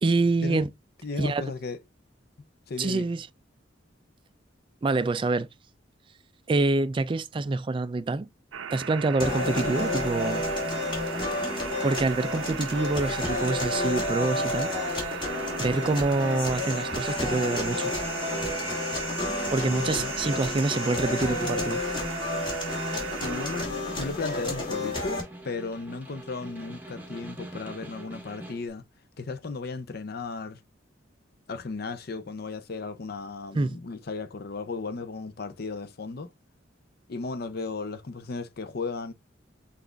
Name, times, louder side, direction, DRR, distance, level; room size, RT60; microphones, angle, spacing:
voice 1, 0.0-0.7 1.2-1.4 2.8-3.3 4.8-5.5 6.5-8.3 8.7-10.5 11.8-14.7 15.6-17.9 19.5-21.8 33.6-33.8, right 3 dB, 25° right, 0.3 m, -26 dB
voice 2, 1.0-1.8 2.7-3.1 19.6-20.1 23.2-28.8 29.2-30.6 31.5-36.3 37.1-39.1, left 4 dB, 50° left, 0.6 m, -35 dB
sound 1, 8.5-23.7, right 8 dB, 90° right, 0.5 m, -37 dB
sound 2, 9.2-25.2, left 2 dB, 25° left, 2.0 m, -30 dB
Snare drum, 22.6-28.7, right 1 dB, 10° right, 0.9 m, -43 dB
5.8 x 2.5 x 3.3 m
head